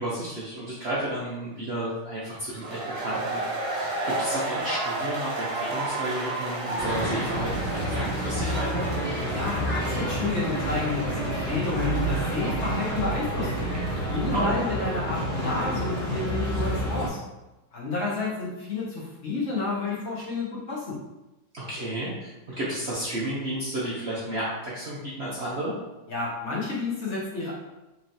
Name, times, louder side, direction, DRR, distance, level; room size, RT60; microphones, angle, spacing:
voice 1, 0.0-8.9 14.3-14.5 21.5-22.3 22.6-25.7, right 1 dB, 75° right, -7 dB, 0.5 m, -32 dB
sound 1, 2.5-14.1, right 2 dB, 50° right, 1.1 m, -33 dB
sound 2, 6.8-17.1, right 1 dB, 10° left, 0.9 m, -29 dB
voice 2, 9.3-13.6 14.0-17.2 17.7-21.0 26.1-27.5, left 3 dB, 50° left, -5 dB, 0.9 m, -30 dB
4.3 x 3.0 x 2.7 m, 1.0 s
omnidirectional pair, 2.1 m